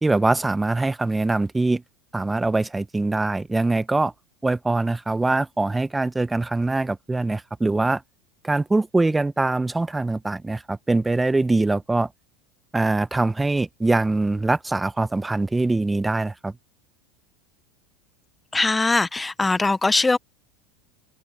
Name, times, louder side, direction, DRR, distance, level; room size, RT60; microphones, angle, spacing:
voice 1, 0.0-1.8 2.1-4.1 4.4-8.0 8.4-12.1 12.7-16.5, right 2 dB, 10° right, 1.3 m, -23 dB
voice 2, 18.5-20.2, left 3 dB, 15° left, 1.0 m, -21 dB
hypercardioid pair, 90°, 0 cm